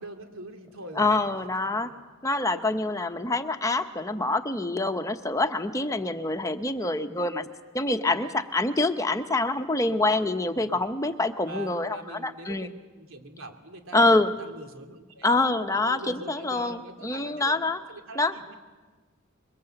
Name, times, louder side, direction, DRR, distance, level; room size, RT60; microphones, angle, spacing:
voice 1, 0.0-1.1 1.6-2.0 4.3-4.4 5.9-6.3 8.1-8.3 9.9-10.0 10.6-10.8 11.5-12.7 12.9-15.3 15.8-17.6 17.9-18.5, right 1 dB, 90° right, 5 dB, 2.9 m, -44 dB
voice 2, 1.0-1.9 2.2-7.5 7.7-12.7 13.9-14.3 15.2-17.8 18.1-18.3, left 2 dB, 15° left, 7 dB, 0.9 m, -26 dB
26.0 x 22.5 x 7.9 m, 1.3 s
head